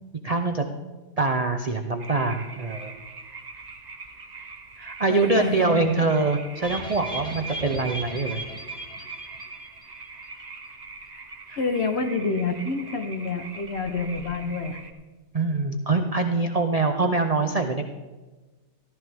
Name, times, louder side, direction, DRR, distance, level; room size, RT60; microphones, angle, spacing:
voice 1, 0.2-0.6 1.2-2.9 4.8-8.4 11.5-11.6 15.3-17.9, right 3 dB, 60° right, 5 dB, 0.4 m, -24 dB
sound 1, 2.0-14.9, right 4 dB, 35° right, 0.8 m, -43 dB
voice 2, 5.1-6.2 11.1-11.2 11.6-14.8, left 4 dB, 50° left, 6 dB, 1.0 m, -28 dB
sound 2, 6.6-10.1 10.3-10.4 10.7-10.8, right 1 dB, 5° left, 1.7 m, -36 dB
14.0 x 14.0 x 3.4 m, 1.2 s
omnidirectional pair, 1.7 m